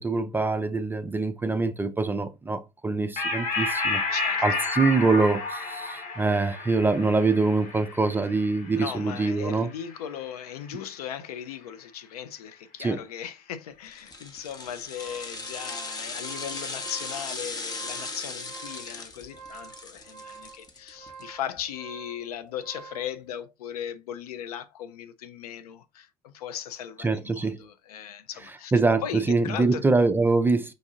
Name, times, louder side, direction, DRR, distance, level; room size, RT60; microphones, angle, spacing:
voice 1, 0.0-4.0 4.4-9.7 12.8-13.0 27.0-27.6 28.7-30.7, right 3 dB, 10° right, 0.3 m, -24 dB
sound 1, 3.2-10.0, left 3 dB, 40° left, 1.1 m, -31 dB
voice 2, 4.1-4.4 8.7-28.7 29.0-29.9, left 9 dB, 75° left, 0.5 m, -38 dB
sound 2, 13.9-21.2 21.6-21.7, left 3 dB, 20° left, 0.7 m, -37 dB
sound 3, 14.7-23.1, right 5 dB, 40° right, 0.7 m, -47 dB
5.0 x 2.6 x 2.5 m
figure-of-eight pair, 75°, 20 cm